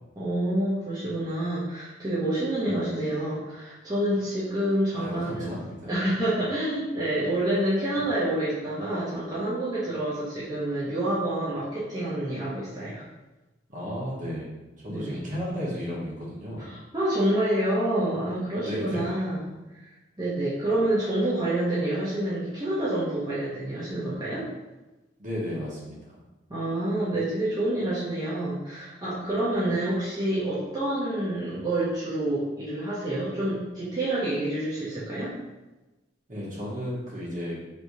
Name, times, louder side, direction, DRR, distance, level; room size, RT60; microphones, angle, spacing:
voice 1, 0.2-5.6 5.9-13.0 14.9-15.2 16.6-19.9 20.2-24.5 26.5-35.3, right 1 dB, 20° right, -10 dB, 0.8 m, -28 dB
voice 2, 4.9-5.9 13.7-16.7 18.6-19.1 25.2-26.2 36.3-37.6, equal, 45° right, -5 dB, 1.2 m, -34 dB
4.7 x 3.3 x 2.7 m, 1.1 s
head